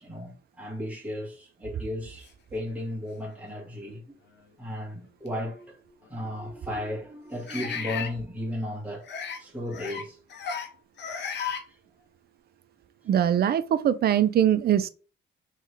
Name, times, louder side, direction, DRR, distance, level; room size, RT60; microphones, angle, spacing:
voice 1, 0.0-4.2 4.6-9.0 9.4-10.2 11.7-11.8, left 1 dB, 5° right, 1.7 m, -35 dB
sound 1, 2.7-2.8 3.5-3.6 5.3-5.4 7.5-8.1 9.0-9.4 9.7-10.0 10.3-10.7 11.0-11.6, left 6 dB, 60° left, 1.0 m, -34 dB
voice 2, 13.1-14.9, right 10 dB, 50° right, 0.5 m, -22 dB
3.6 x 3.2 x 3.2 m
cardioid pair, 90°, 20 cm